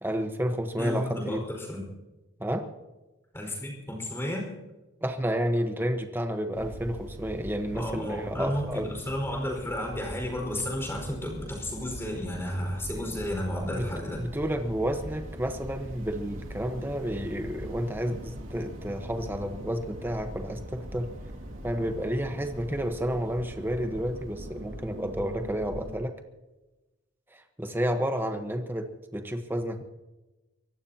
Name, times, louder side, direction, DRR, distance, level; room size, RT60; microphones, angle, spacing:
voice 1, 0.0-1.4 2.4-2.7 5.0-8.9 13.6-13.9 14.2-21.1 21.6-26.1 27.3-29.8, equal, 10° right, 6 dB, 1.1 m, -31 dB
voice 2, 0.8-1.8 3.3-4.5 7.7-14.2, left 1 dB, 15° left, 1 dB, 5.1 m, -32 dB
sound 1, 6.5-26.0, equal, 85° right, 2.4 m, -42 dB
24.5 x 17.5 x 2.9 m, 1.1 s
head